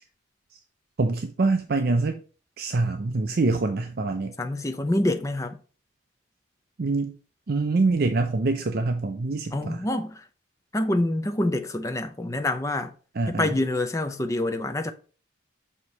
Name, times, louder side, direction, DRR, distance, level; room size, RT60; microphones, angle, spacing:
voice 1, 1.0-2.2 2.6-4.3 6.8-7.1 7.5-9.8 13.2-13.5, right 3 dB, 50° right, 0.5 m, -25 dB
voice 2, 4.4-5.6 9.5-10.2 10.7-12.9 13.3-14.9, left 1 dB, 15° left, 0.5 m, -26 dB
6.3 x 2.9 x 5.3 m
head